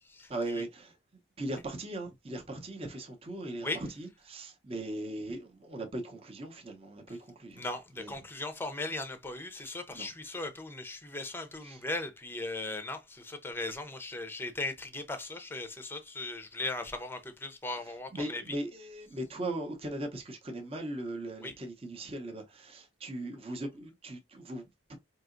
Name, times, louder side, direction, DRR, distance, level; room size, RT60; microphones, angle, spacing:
voice 1, 0.3-1.0 1.4-7.6 8.0-8.2 9.9-10.1 11.6-11.8 17.8-24.9, right 1 dB, 30° right, 0.8 m, -39 dB
voice 2, 7.6-18.4 21.4-21.5, left 2 dB, 10° left, 0.6 m, -38 dB
4.7 x 2.8 x 2.5 m
head